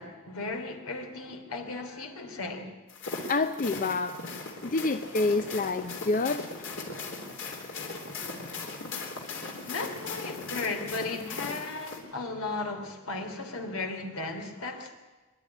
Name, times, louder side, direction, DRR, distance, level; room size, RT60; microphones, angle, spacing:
voice 1, 0.0-2.7 9.6-14.9, left 3 dB, 80° left, 5 dB, 3.2 m, -35 dB
sound 1, 2.9-12.0, left 3 dB, 60° left, 3.6 m, -38 dB
voice 2, 3.3-4.2 4.6-6.5, left 3 dB, 40° left, 10 dB, 0.6 m, -27 dB
25.5 x 11.5 x 9.7 m, 1.2 s
head